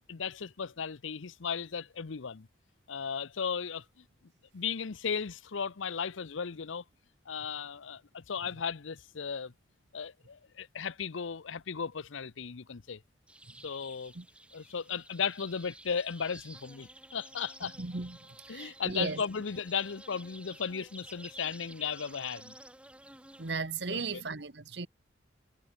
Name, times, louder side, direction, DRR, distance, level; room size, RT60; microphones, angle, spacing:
voice 1, 0.1-2.5 2.9-3.8 4.5-6.8 7.3-9.5 9.9-13.0 13.6-14.1 14.5-17.7 18.5-22.5 23.9-24.2, left 6 dB, 85° left, 0.7 m, -36 dB
sound 1, 13.3-23.5, right 1 dB, 5° right, 7.3 m, -52 dB
voice 2, 17.6-18.2 18.5-19.2 23.4-24.9, right 3 dB, 60° right, 1.3 m, -36 dB
head